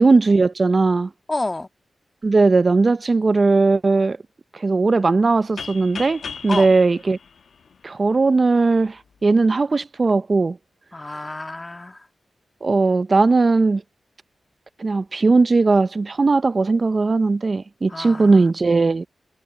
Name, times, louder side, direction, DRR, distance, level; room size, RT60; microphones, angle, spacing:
voice 1, 0.0-1.1 2.2-4.2 4.5-7.2 7.8-9.0 9.2-10.6 12.6-13.8 14.8-19.1, right 3 dB, 50° right, 0.6 m, -18 dB
voice 2, 1.3-1.7 6.5-6.7 10.9-12.1 17.9-18.5, left 2 dB, 30° left, 2.0 m, -30 dB
sound 1, 5.6-8.3, left 6 dB, 75° left, 1.3 m, -36 dB
cardioid pair, 45°, 0 cm